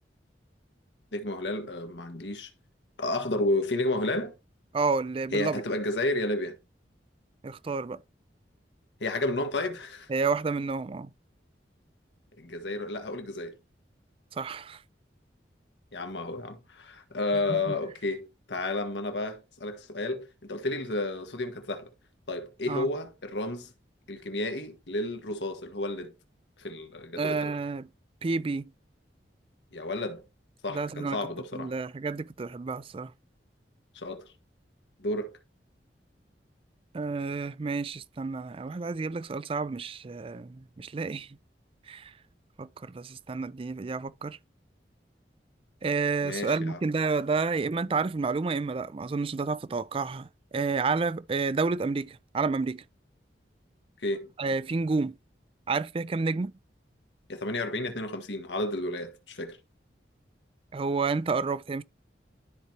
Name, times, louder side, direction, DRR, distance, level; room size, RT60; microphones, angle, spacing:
voice 1, 1.1-2.5 3.0-4.3 5.3-6.6 9.0-10.1 12.4-13.6 15.9-21.9 22.3-23.7 24.1-26.1 26.6-27.5 29.7-30.2 30.6-31.7 33.9-34.3 35.0-35.4 46.2-46.8 54.0-54.3 57.3-59.6, left 2 dB, 90° left, 1.5 m, -31 dB
voice 2, 4.7-5.6 7.4-8.0 10.1-11.1 14.3-14.8 17.5-17.7 22.7-22.9 27.2-27.9 28.2-28.7 30.7-31.2 31.5-33.1 36.9-41.4 41.9-42.1 42.6-44.4 45.8-52.8 54.4-55.2 55.7-56.5 60.7-61.8, right 4 dB, 30° right, 0.4 m, -30 dB
12.5 x 4.6 x 2.9 m
head